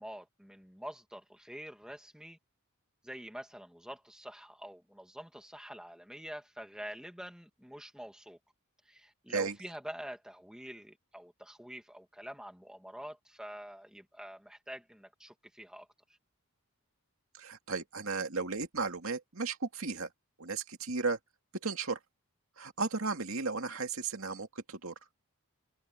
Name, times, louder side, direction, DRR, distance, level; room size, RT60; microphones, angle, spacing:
voice 1, 0.0-2.4 3.0-8.4 8.8-15.9, equal, 5° right, 2.1 m, -46 dB
voice 2, 17.4-20.1 20.4-21.2 21.6-22.0 22.6-24.9, right 4 dB, 65° right, 2.4 m, -35 dB
head